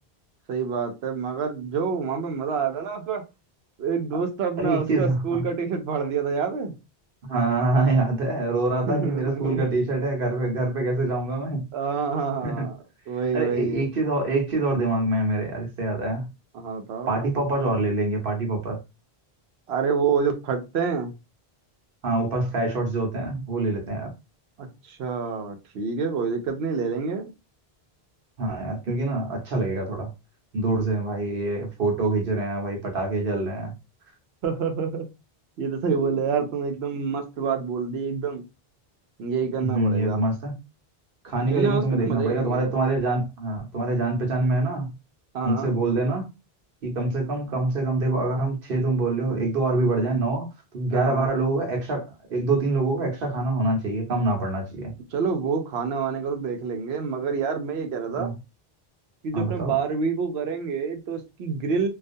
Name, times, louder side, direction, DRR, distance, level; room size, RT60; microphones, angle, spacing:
voice 1, 0.5-3.2 3.8-6.7 8.8-9.7 11.7-12.8 13.1-13.9 16.5-17.2 19.7-21.1 24.6-27.3 34.4-35.1 35.6-38.4 39.2-40.2 41.4-42.7 45.3-45.7 50.9-51.4 55.1-58.3 59.2-61.9, right 5 dB, 85° right, 0.9 m, -27 dB
voice 2, 4.6-5.4 7.3-11.7 12.4-12.7 13.3-16.3 17.1-18.8 22.0-24.1 28.4-30.1 30.5-33.7 39.6-40.6 41.2-44.9 45.4-46.3 46.8-50.5 50.7-54.9 58.1-58.3 59.3-59.8, right 2 dB, 65° right, 1.0 m, -25 dB
2.4 x 2.3 x 2.5 m
omnidirectional pair, 1.0 m